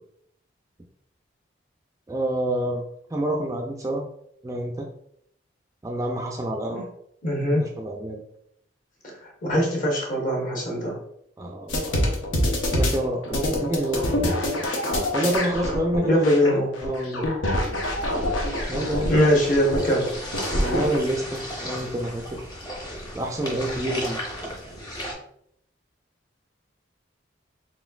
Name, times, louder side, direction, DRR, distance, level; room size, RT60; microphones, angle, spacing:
voice 1, 2.1-2.8 3.1-4.0 4.4-4.9 5.8-6.9 7.5-8.2 11.4-11.9 12.6-14.3 15.1-16.6 16.8-17.8 18.7-19.2 20.5-22.5 23.1-24.5, right 1 dB, 15° right, 1 dB, 0.3 m, -28 dB
voice 2, 7.2-7.6 9.0-11.0 16.0-16.8 19.1-20.1, equal, 45° left, -2 dB, 1.1 m, -22 dB
sound 1, 11.7-21.0, left 1 dB, 90° left, 1.0 m, -26 dB
sound 2, 17.7-25.1, equal, 20° left, 0.8 m, -35 dB
4.1 x 3.8 x 2.3 m, 0.71 s
head